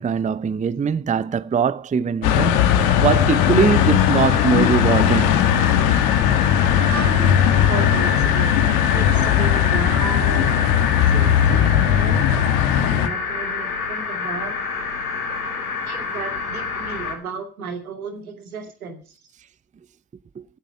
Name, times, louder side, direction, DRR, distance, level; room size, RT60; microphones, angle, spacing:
voice 1, 0.0-5.3 20.4-20.5, right 6 dB, 20° right, 0.6 m, -21 dB
sound 1, 2.2-17.1, left 5 dB, 85° left, 2.5 m, -27 dB
sound 2, 2.2-13.1, left 10 dB, 65° left, 1.4 m, -18 dB
voice 2, 6.9-8.6 8.9-10.5 11.1-14.6 15.1-19.1, right 5 dB, 80° right, 2.4 m, -34 dB
15.0 x 9.0 x 6.6 m
figure-of-eight pair, 50°, 42 cm